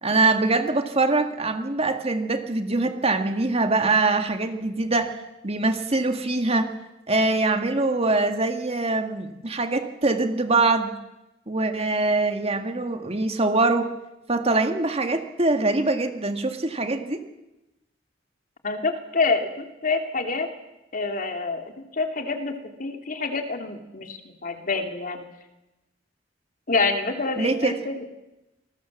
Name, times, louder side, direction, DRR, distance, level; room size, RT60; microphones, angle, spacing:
voice 1, 0.0-5.2 5.4-6.7 7.1-10.9 11.5-13.9 14.3-17.2 27.4-27.8, right 3 dB, 35° right, 7 dB, 1.9 m, -23 dB
voice 2, 18.6-20.5 20.9-21.6 21.9-25.2 26.7-28.0, left 3 dB, 45° left, 5 dB, 2.6 m, -27 dB
27.0 x 20.0 x 7.4 m, 0.96 s
head